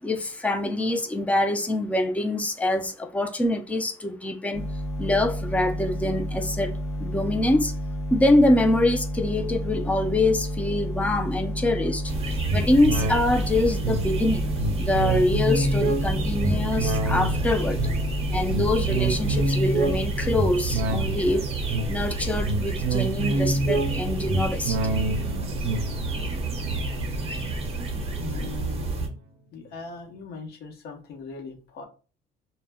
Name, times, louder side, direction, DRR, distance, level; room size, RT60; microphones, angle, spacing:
voice 1, 0.0-4.6 5.0-6.7 7.0-7.7 8.1-12.1 12.5-14.5 14.8-17.8 18.3-21.5 21.9-24.8, left 1 dB, 10° left, 0.4 m, -24 dB
sound 1, 4.5-19.5, equal, 40° left, 0.8 m, -31 dB
sound 2, 12.1-29.1, right 3 dB, 35° right, 0.6 m, -30 dB
sound 3, 12.5-28.2 28.6-28.7, right 2 dB, 85° right, 0.4 m, -28 dB
voice 2, 28.2-28.9 29.5-31.9, left 4 dB, 70° left, 0.8 m, -39 dB
2.1 x 2.1 x 3.4 m
cardioid pair, 110°, 17 cm